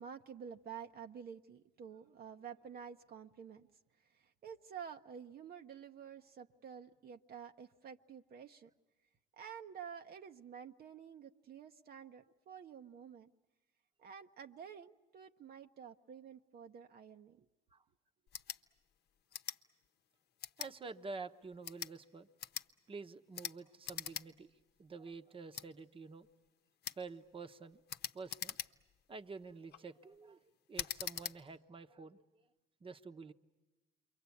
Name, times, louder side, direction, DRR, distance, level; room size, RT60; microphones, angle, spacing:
voice 1, 0.0-3.7 4.0-8.7 9.3-13.3 14.0-17.5, right 7 dB, 55° right, 5 dB, 0.9 m, -50 dB
sound 1, 18.3-18.6 19.3-19.6 20.4-20.7 21.5-21.9 22.4-22.7 23.3-23.6 23.8-24.3 24.6-24.7 25.5-25.7 26.8-27.0 27.9-29.0 29.5-29.8 30.7-31.4, left 9 dB, 60° left, 0.8 m, -42 dB
voice 2, 20.6-22.3 22.9-24.5 24.8-26.3 27.0-27.8 28.1-28.6 29.1-30.4 30.7-32.2 32.8-33.3, right 4 dB, 30° right, 10 dB, 1.0 m, -48 dB
28.0 x 23.5 x 8.5 m, 1.1 s
cardioid pair, 85°, 19 cm